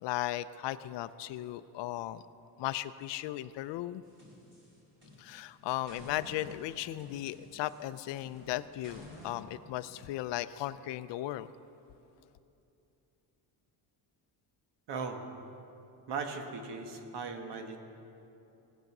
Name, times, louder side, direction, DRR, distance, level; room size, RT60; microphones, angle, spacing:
voice 1, 0.0-2.2 2.6-4.0 5.2-11.5, left 14 dB, 80° left, 13 dB, 0.5 m, -36 dB
sound 1, 4.0-5.5 5.9-9.4, left 1 dB, 25° right, 3.4 m, -52 dB
voice 2, 14.9-15.2 16.1-17.8, right 4 dB, 70° right, 4 dB, 1.5 m, -38 dB
18.0 x 8.0 x 6.0 m, 2.9 s
cardioid pair, 140°, 42 cm